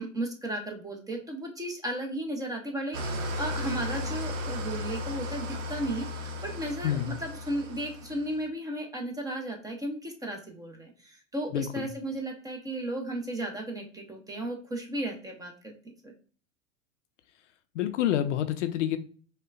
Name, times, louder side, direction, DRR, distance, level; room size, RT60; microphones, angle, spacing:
voice 1, 0.0-15.7, right 1 dB, 10° right, 2 dB, 0.6 m, -35 dB
Engine starting / Idling, 2.9-8.4, left 1 dB, 65° right, 0.7 m, -35 dB
voice 2, 6.8-7.1 11.5-11.9 17.8-19.0, left 11 dB, 65° left, 9 dB, 0.5 m, -28 dB
5.2 x 2.2 x 2.3 m, 0.42 s
hypercardioid pair, 95°, 40 cm